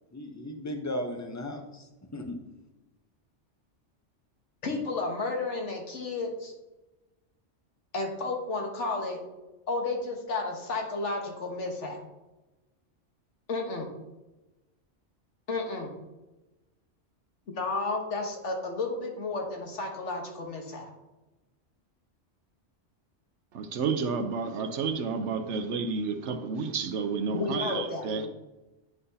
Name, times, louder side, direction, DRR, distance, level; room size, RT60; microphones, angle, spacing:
voice 1, 0.1-2.4, left 1 dB, 15° left, 0.7 m, -36 dB
voice 2, 4.6-6.5 7.9-9.2 9.7-12.0 13.5-13.9 15.5-15.9 17.5-20.9 27.3-28.3, left 3 dB, 75° left, 1.5 m, -32 dB
voice 3, 23.5-28.3, right 5 dB, 75° right, 1.0 m, -31 dB
9.5 x 5.7 x 2.8 m
omnidirectional pair, 1.2 m